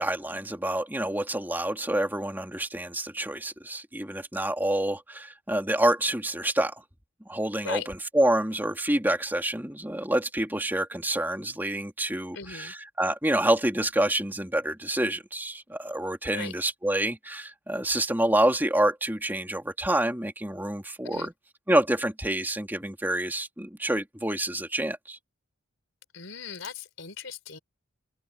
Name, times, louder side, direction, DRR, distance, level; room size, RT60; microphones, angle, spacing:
voice 1, 0.0-6.8 7.3-21.3 21.7-25.2, right 1 dB, 10° right, 2.7 m, -27 dB
voice 2, 12.3-12.7 16.3-16.5 21.0-21.3 26.1-27.6, left 5 dB, 65° left, 4.4 m, -38 dB
open air
head